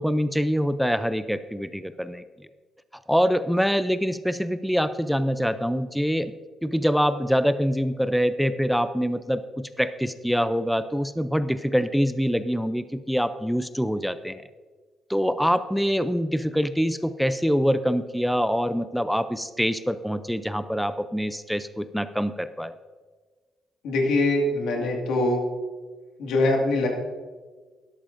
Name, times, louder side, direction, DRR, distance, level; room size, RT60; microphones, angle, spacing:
voice 1, 0.0-2.2 3.1-6.3 6.6-14.4 15.1-22.7, equal, ahead, 12 dB, 0.4 m, -25 dB
voice 2, 23.8-25.4 26.2-26.9, left 2 dB, 85° left, 1 dB, 1.9 m, -23 dB
12.5 x 11.5 x 2.6 m, 1.4 s
cardioid pair, 90°, 0 cm